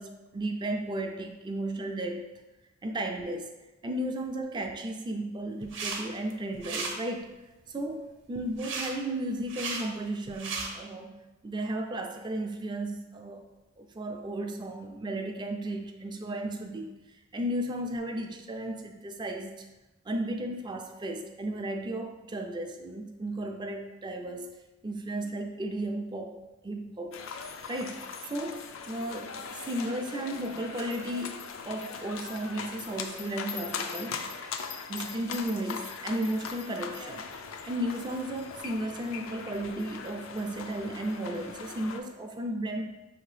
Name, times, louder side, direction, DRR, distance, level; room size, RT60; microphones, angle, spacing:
voice 1, 0.0-2.3 2.8-3.5 3.8-7.3 7.7-11.2 11.4-13.5 13.8-16.9 17.3-19.7 20.1-24.6 24.8-26.4 26.6-27.2 27.7-28.0 28.3-31.4 31.7-34.5 34.9-37.2 37.7-42.8, right 1 dB, 20° right, 4 dB, 0.4 m, -34 dB
sound 1, 5.6-6.0 6.3-6.9 8.6-8.9 9.4-9.8 10.3-10.7, right 4 dB, 65° right, 0.7 m, -34 dB
sound 2, 27.1-42.0, left 5 dB, 90° left, 0.4 m, -40 dB
5.8 x 2.8 x 3.2 m, 1.1 s
head